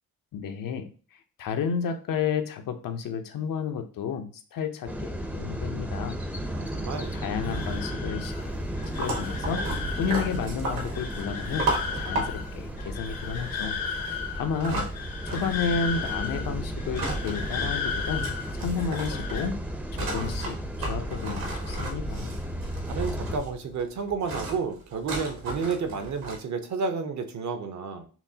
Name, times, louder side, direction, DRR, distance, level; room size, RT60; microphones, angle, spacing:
voice 1, 0.3-0.9 1.4-6.2 7.1-8.3 9.0-9.7 10.0-11.7 11.9-13.8 14.0-14.9 15.3-19.6 19.9-22.3, left 6 dB, 70° left, 7 dB, 0.6 m, -31 dB
sound 1, 4.9-23.4, equal, 5° right, 0.5 m, -34 dB
voice 2, 6.5-7.1 22.9-28.1, right 5 dB, 55° right, 8 dB, 0.7 m, -31 dB
sound 2, 6.9-19.5, left 6 dB, 85° left, 1.1 m, -36 dB
sound 3, 8.8-15.7 15.9-17.4 17.6-17.7 18.0-26.4, right 2 dB, 75° right, 1.4 m, -34 dB
5.7 x 2.1 x 2.7 m, 0.39 s
cardioid pair, 90°, 35 cm